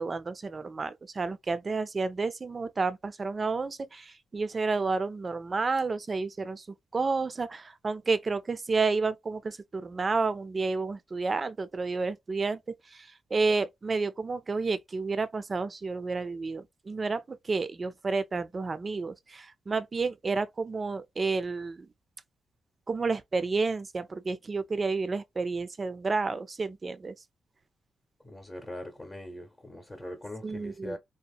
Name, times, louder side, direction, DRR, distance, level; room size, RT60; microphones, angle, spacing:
voice 1, 0.0-6.7 6.9-12.6 12.9-21.9 22.9-27.1 30.4-31.0, right 4 dB, 35° right, 0.4 m, -30 dB
voice 2, 28.2-31.0, left 1 dB, 20° left, 0.7 m, -41 dB
2.9 x 2.0 x 2.3 m
cardioid pair, 70°, 0 cm